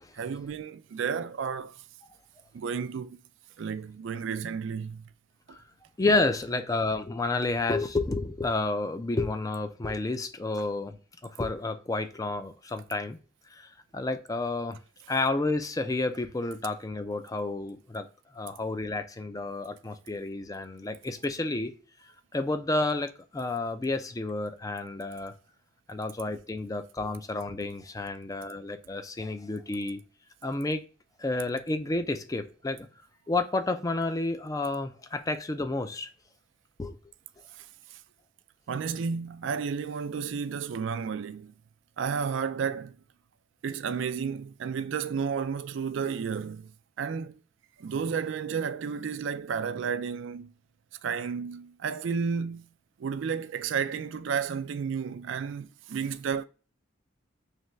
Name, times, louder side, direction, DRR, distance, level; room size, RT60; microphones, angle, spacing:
voice 1, 0.1-1.8 2.5-3.2 3.6-5.1 37.5-38.0 38.7-41.5 42.0-43.0 43.6-46.7 47.0-47.4 47.8-50.5 51.0-52.7 53.0-56.4, right 6 dB, 70° right, 0.3 m, -32 dB
voice 2, 6.0-11.0 11.2-13.2 13.5-14.8 15.1-18.1 18.3-21.7 22.3-25.3 25.9-30.0 30.4-30.8 31.2-32.9 33.3-36.1 36.8-37.0, left 2 dB, 15° left, 0.4 m, -30 dB
3.3 x 3.2 x 3.8 m
head